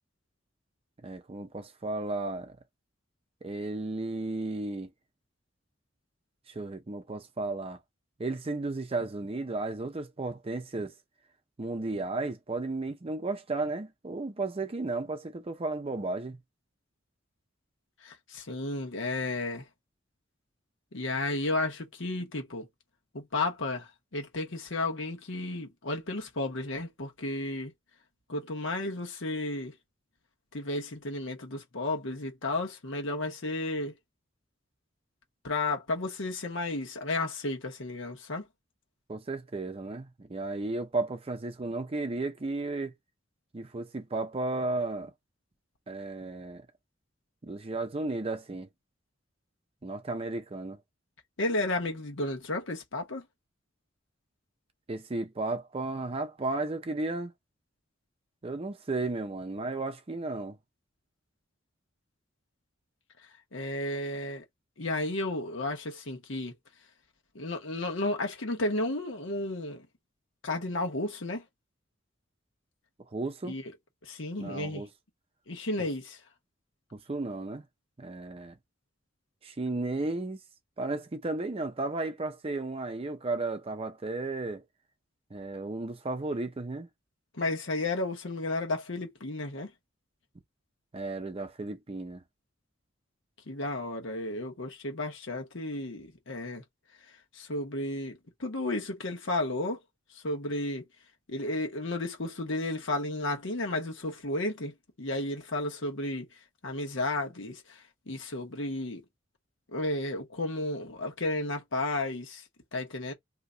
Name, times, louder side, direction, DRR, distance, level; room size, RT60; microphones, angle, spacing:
voice 1, 1.0-2.6 3.4-4.9 6.5-7.8 8.2-10.9 11.6-16.4 39.1-42.9 43.5-45.1 45.9-46.7 47.4-48.7 49.8-50.8 54.9-57.3 58.4-60.6 73.1-73.5 74.4-74.9 76.9-77.6 78.0-78.6 79.4-80.4 80.8-84.6 85.3-86.9 90.9-92.2, right 2 dB, 30° right, 0.5 m, -34 dB
voice 2, 18.0-19.7 20.9-22.7 23.1-27.7 28.3-29.7 30.5-33.9 35.4-38.4 51.4-53.2 63.5-64.4 64.8-66.5 67.3-69.9 70.4-71.4 73.4-73.6 74.0-74.9 75.5-76.2 87.3-89.7 93.5-96.6 97.3-99.8 100.1-100.8 101.3-106.3 106.6-109.0 109.7-112.4 112.7-113.1, left 2 dB, 75° left, 1.1 m, -33 dB
2.8 x 2.3 x 3.8 m
head